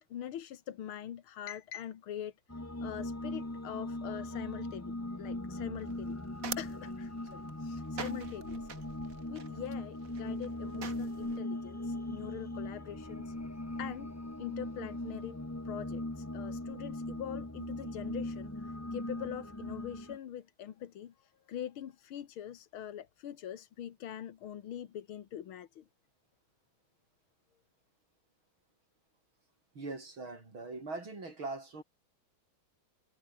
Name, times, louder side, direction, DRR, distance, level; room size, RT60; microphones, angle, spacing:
voice 1, 0.0-6.2 6.6-8.8 9.3-13.4 13.8-14.1 14.4-15.4 15.7-25.8, left 10 dB, 85° left, 2.2 m, -43 dB
sound 1, 2.5-20.2, left 1 dB, 10° left, 1.3 m, -39 dB
sound 2, 5.8-11.4, right 6 dB, 45° right, 1.8 m, -46 dB
voice 2, 29.8-31.8, right 3 dB, 75° right, 7.0 m, -41 dB
omnidirectional pair, 2.3 m